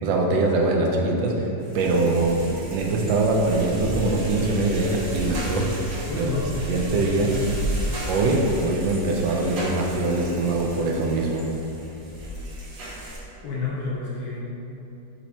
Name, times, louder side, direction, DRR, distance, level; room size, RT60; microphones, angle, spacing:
voice 1, 0.0-1.5 1.7-5.7 6.2-6.3 6.7-7.3 8.1-11.4, right 2 dB, 80° right, 0 dB, 1.2 m, -23 dB
sound 1, 1.6-13.2, right 1 dB, 60° right, 0.6 m, -33 dB
voice 2, 6.1-7.4 13.4-14.4, left 3 dB, 70° left, -5 dB, 0.9 m, -30 dB
4.4 x 2.7 x 4.1 m, 3.0 s
omnidirectional pair, 2.1 m